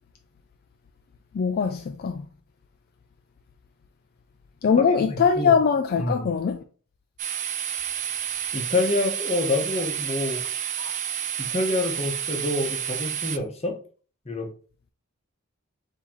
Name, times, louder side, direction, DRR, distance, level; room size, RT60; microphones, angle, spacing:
voice 1, 1.3-2.2 4.6-6.6 10.8-10.9, left 6 dB, 45° left, 0.3 m, -22 dB
voice 2, 4.9-5.5 6.0-6.2 8.5-10.4 11.4-13.8 14.3-14.5, left 2 dB, 30° left, 1.0 m, -27 dB
sound 1, 7.2-13.4, right 9 dB, 35° right, 0.5 m, -30 dB
3.8 x 2.8 x 4.5 m
head